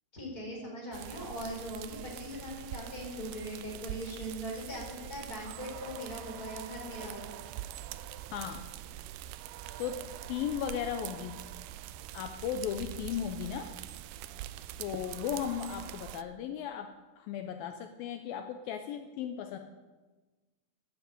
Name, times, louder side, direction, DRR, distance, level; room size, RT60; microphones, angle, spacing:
voice 1, 0.1-7.4, equal, 20° left, -3 dB, 4.6 m, -40 dB
sound 1, 0.9-16.2, right 13 dB, 85° right, 2.0 m, -44 dB
voice 2, 8.3-8.7 9.8-10.0 10.3-11.4 12.1-13.7 14.8-16.9 17.2-19.6, left 9 dB, 80° left, 6 dB, 2.3 m, -36 dB
12.0 x 9.1 x 9.1 m, 1.3 s
omnidirectional pair, 4.6 m